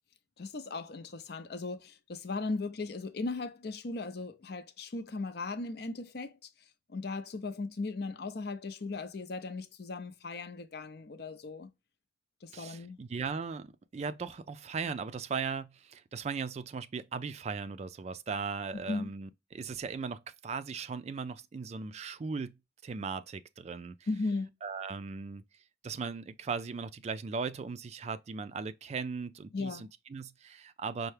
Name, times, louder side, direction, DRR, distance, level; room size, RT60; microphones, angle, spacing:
voice 1, 0.4-6.4 6.9-11.7 12.4-13.0 18.9-19.1 24.1-24.5 29.5-29.9, left 3 dB, 60° left, 0.6 m, -37 dB
voice 2, 12.5-22.6 22.8-24.0 24.6-25.4 25.8-31.1, right 5 dB, 35° right, 0.3 m, -38 dB
5.5 x 2.1 x 3.2 m
head